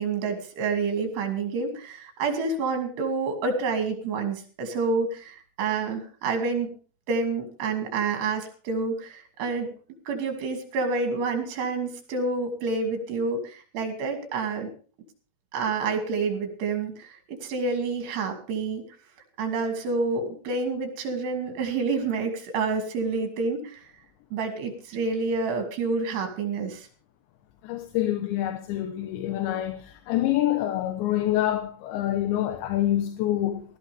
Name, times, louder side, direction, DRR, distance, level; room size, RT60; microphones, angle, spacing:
voice 1, 0.0-6.7 7.1-9.7 10.1-14.7 15.5-18.8 19.4-23.8 24.3-26.9, right 4 dB, 70° right, 4.6 m, -28 dB
voice 2, 27.6-33.6, left 13 dB, 80° left, 3.3 m, -26 dB
18.0 x 14.5 x 3.5 m
omnidirectional pair, 5.1 m